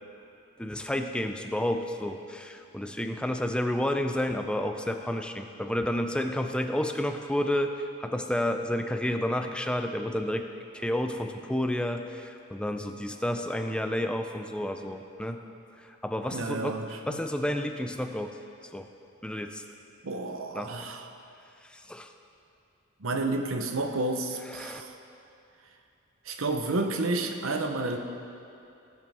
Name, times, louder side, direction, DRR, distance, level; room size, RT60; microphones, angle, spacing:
voice 1, 0.6-15.4 15.8-16.8 17.1-18.4 18.7-18.9 19.2-19.6 20.5-20.7 21.6-22.1 24.5-24.8, left 1 dB, 5° left, 6 dB, 0.4 m, -30 dB
voice 2, 16.3-17.2 20.0-21.1 23.0-25.0 26.2-28.0, right 2 dB, 65° right, 5 dB, 0.9 m, -30 dB
16.5 x 7.7 x 3.5 m, 2.6 s
head